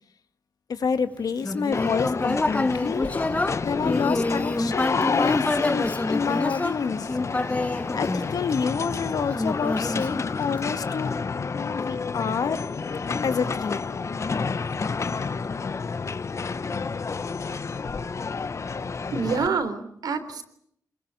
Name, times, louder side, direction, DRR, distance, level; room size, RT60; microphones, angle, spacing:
voice 1, 0.7-3.1 3.6-7.1 7.9-11.1 11.5-12.7 13.2-14.1, left 6 dB, 70° left, 10 dB, 1.9 m, -28 dB
Human voice, 1.4-8.8 9.3-10.8, left 2 dB, 20° left, 1.1 m, -27 dB
sound 1, 1.7-19.5, left 4 dB, 45° left, 1.1 m, -30 dB
voice 2, 19.1-20.4, right 5 dB, 80° right, 8 dB, 3.7 m, -27 dB
26.5 x 21.5 x 9.1 m, 0.70 s
cardioid pair, 90°, 7 cm